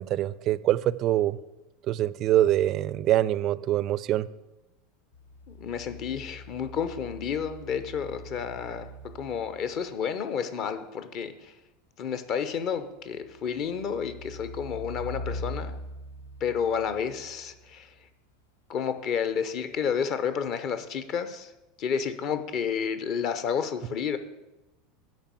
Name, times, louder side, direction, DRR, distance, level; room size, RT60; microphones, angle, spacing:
voice 1, 0.0-1.4 1.9-4.3, right 13 dB, 40° right, 18 dB, 0.3 m, -24 dB
sound 1, 5.1-9.8 13.1-17.7 19.8-19.9, left 1 dB, 75° left, 0.8 m, -42 dB
voice 2, 5.5-11.5 12.0-15.8 16.4-17.9 18.7-21.5 21.8-24.2, left 7 dB, 45° left, 10 dB, 0.8 m, -31 dB
10.5 x 4.2 x 7.5 m, 1.0 s
figure-of-eight pair, 80°, 0 cm